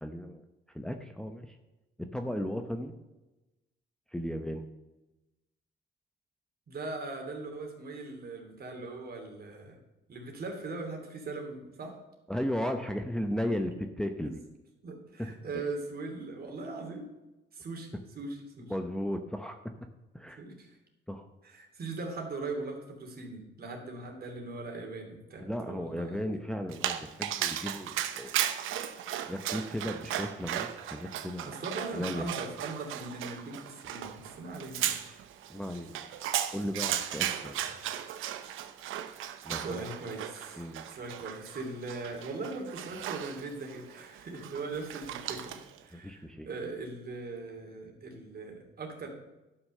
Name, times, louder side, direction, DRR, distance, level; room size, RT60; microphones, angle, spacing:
voice 1, 0.0-0.4 0.7-1.6 2.0-2.9 4.1-4.6 12.3-14.4 15.2-15.6 18.7-19.6 20.1-20.4 21.1-21.3 25.4-28.3 29.3-31.5 31.9-32.3 35.0-35.2 35.5-36.1 36.5-37.6 39.4-39.9 40.6-40.9 45.9-46.5, equal, 5° left, 5 dB, 0.8 m, -35 dB
voice 2, 6.7-9.8 10.1-12.0 14.2-14.3 14.8-17.1 17.5-17.9 18.1-18.7 20.4-20.8 21.4-26.4 31.4-35.1 39.6-45.6 45.8-49.1, right 3 dB, 50° right, 2 dB, 3.0 m, -40 dB
Dog, 26.7-45.8, right 11 dB, 85° right, 0.8 m, -36 dB
11.5 x 5.9 x 6.5 m, 1.0 s
cardioid pair, 90°, 20 cm